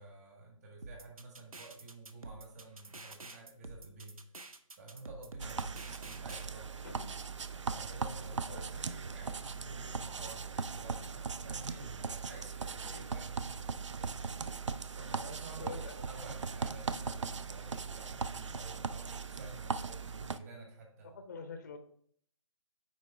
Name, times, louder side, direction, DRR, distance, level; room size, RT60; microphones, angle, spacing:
voice 1, 0.0-4.2 4.8-6.9 7.7-13.7 15.0-21.1, right 2 dB, 30° right, 0 dB, 1.9 m, -51 dB
sound 1, 0.8-6.5, right 2 dB, 80° right, 0.8 m, -48 dB
sound 2, 5.4-20.4, right 5 dB, 60° right, 0.5 m, -39 dB
voice 2, 6.8-7.1 8.3-8.7 10.8-11.2 12.8-13.1 15.6-16.0 21.0-21.8, left 4 dB, 30° left, 8 dB, 0.6 m, -47 dB
9.4 x 4.1 x 3.7 m, 0.63 s
figure-of-eight pair, 155°, 18 cm